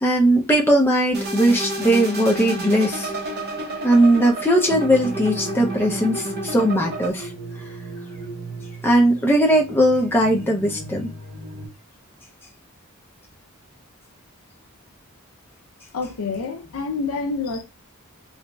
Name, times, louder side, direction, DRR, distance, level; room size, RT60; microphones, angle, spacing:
voice 1, 0.0-3.1 3.8-7.3 8.8-11.1, right 1 dB, 10° left, 0.4 m, -19 dB
sound 1, 1.1-7.1, right 1 dB, 45° right, 0.8 m, -30 dB
sound 2, 4.7-11.7, right 2 dB, 65° right, 1.0 m, -37 dB
voice 2, 15.9-17.6, left 4 dB, 70° left, 0.4 m, -27 dB
2.9 x 2.7 x 2.2 m
head